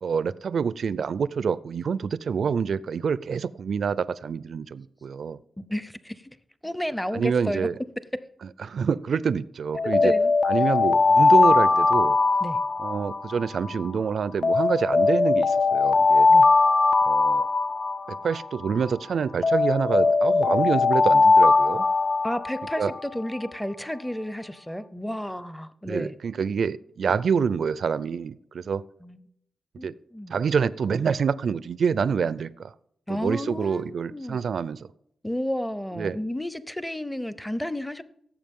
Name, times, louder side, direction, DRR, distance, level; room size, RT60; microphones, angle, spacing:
voice 1, 0.0-5.4 7.1-7.7 8.6-10.1 10.4-12.2 12.8-16.3 17.1-17.5 18.2-21.8 22.8-22.9 25.8-28.8 29.8-29.9 30.3-32.7 33.1-34.9 36.0-36.2, right 6 dB, 70° right, 18 dB, 0.4 m, -27 dB
voice 2, 5.7-6.4 6.6-7.7 9.8-10.3 12.4-12.6 16.3-16.5 22.2-26.1 29.0-29.2 29.8-30.4 33.1-34.4 35.2-38.0, equal, 5° left, 14 dB, 0.7 m, -32 dB
Alarm, 9.7-13.9 14.4-18.9 19.4-23.2, left 3 dB, 50° left, 0.5 m, -20 dB
16.5 x 7.3 x 3.7 m, 0.75 s
cardioid pair, 75°, 0 cm